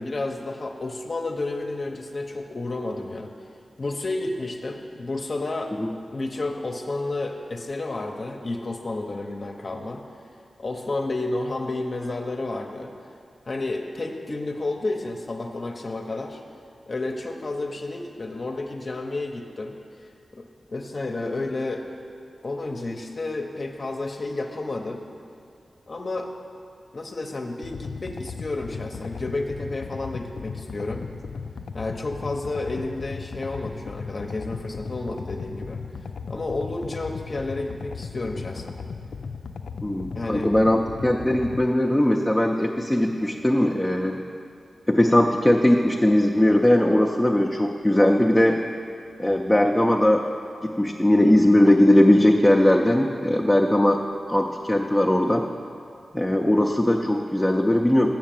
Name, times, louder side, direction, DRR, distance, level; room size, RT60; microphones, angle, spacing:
voice 1, 0.0-3.3 3.8-5.7 6.1-10.0 10.6-12.9 13.5-16.4 16.9-21.9 22.4-25.0 25.9-26.3 26.9-31.0 31.7-35.8 36.3-38.8 40.1-40.5, left 2 dB, 50° left, 2 dB, 0.7 m, -31 dB
sound 1, 27.6-41.6, left 5 dB, 85° left, 0.3 m, -36 dB
voice 2, 39.8-44.2 44.9-48.6 49.2-50.3 50.6-54.0 54.3-55.4 56.1-58.1, left 1 dB, 10° left, 0 dB, 0.5 m, -19 dB
7.3 x 6.3 x 7.5 m, 2.5 s
cardioid pair, 70°, 0 cm